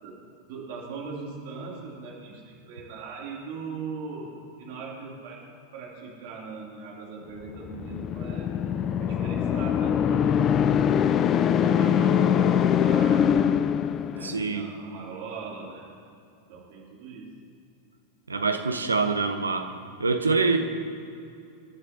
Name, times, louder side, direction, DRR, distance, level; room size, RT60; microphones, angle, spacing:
voice 1, 0.0-4.3 4.6-8.6 9.0-11.2 11.4-13.7 14.1-15.9 16.5-17.3, right 4 dB, 50° right, -3 dB, 3.2 m, -40 dB
sound 1, 7.6-14.5, left 8 dB, 30° left, 0.5 m, -23 dB
voice 2, 14.2-14.7 18.3-19.7 20.0-20.6, right 4 dB, 75° right, 6 dB, 1.1 m, -25 dB
29.5 x 12.0 x 2.9 m, 2.5 s
figure-of-eight pair, 90°, 0 cm